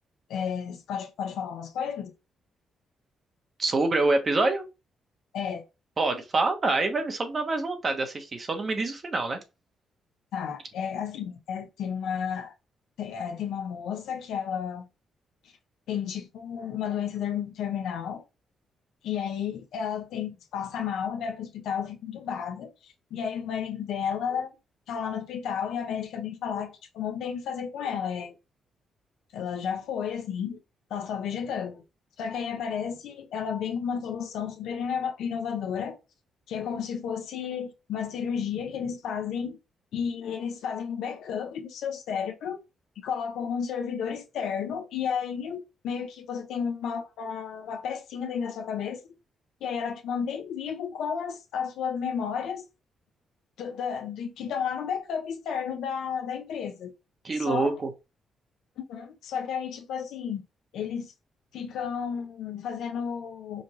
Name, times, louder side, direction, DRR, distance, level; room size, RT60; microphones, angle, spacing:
voice 1, 0.3-2.1 5.3-5.6 10.3-12.5 13.0-14.9 15.9-18.2 19.0-24.5 24.9-28.3 29.3-30.6 30.9-31.8 32.2-36.0 36.5-39.6 39.9-42.6 43.0-49.0 49.6-52.6 53.6-56.9 57.3-57.8 58.8-60.4 60.7-61.1 61.5-63.6, left 7 dB, 80° left, 0.9 m, -32 dB
voice 2, 3.6-4.6 6.0-9.4 57.2-57.9, right 3 dB, 40° right, 1.1 m, -26 dB
5.2 x 2.5 x 3.1 m
cardioid pair, 75°, 0 cm